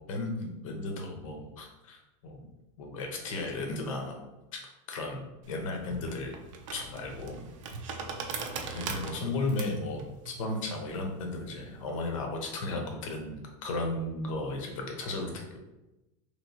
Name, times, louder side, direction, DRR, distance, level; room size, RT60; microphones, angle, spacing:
voice 1, 0.1-2.5 2.8-4.6 4.9-6.4 6.7-7.5 8.7-15.6, left 2 dB, 85° left, 2 dB, 0.9 m, -35 dB
sound 1, 5.4-12.1, right 5 dB, 75° right, 0.5 m, -41 dB
3.2 x 3.1 x 2.7 m, 0.99 s
supercardioid pair, 180°, 16 cm